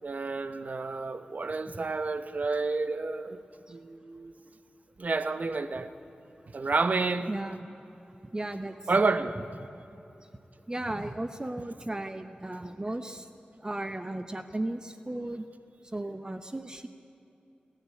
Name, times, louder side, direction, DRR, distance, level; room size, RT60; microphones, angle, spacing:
voice 1, 0.0-3.4 3.7-4.3 5.0-5.9 6.5-7.3 8.9-9.4, right 3 dB, 55° right, 11 dB, 1.0 m, -29 dB
voice 2, 7.3-7.7 8.1-8.9 9.6-10.0 10.7-13.3 13.6-15.5 15.9-16.9, right 1 dB, 25° right, 9 dB, 0.9 m, -36 dB
29.0 x 11.5 x 9.7 m, 2.8 s
wide cardioid pair, 65°, 3 cm